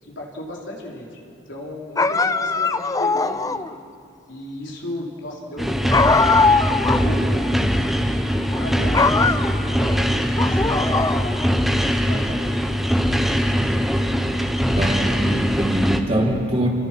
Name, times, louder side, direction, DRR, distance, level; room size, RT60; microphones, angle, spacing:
voice 1, 0.0-1.2 1.5-3.6 4.3-6.1 6.4-7.6 8.0-11.3 12.1-12.9 16.1-16.5, left 1 dB, 80° left, -3 dB, 4.3 m, -35 dB
sound 1, 2.0-3.7 5.9-7.1 7.4-7.5 8.4-8.6 8.9-10.0 10.4-11.6, left 4 dB, 20° left, 0.5 m, -20 dB
sound 2, 5.6-16.0, equal, ahead, 1.2 m, -21 dB
voice 2, 14.8-16.7, right 1 dB, 35° right, -1 dB, 3.5 m, -23 dB
29.0 x 22.5 x 6.2 m, 2.5 s
head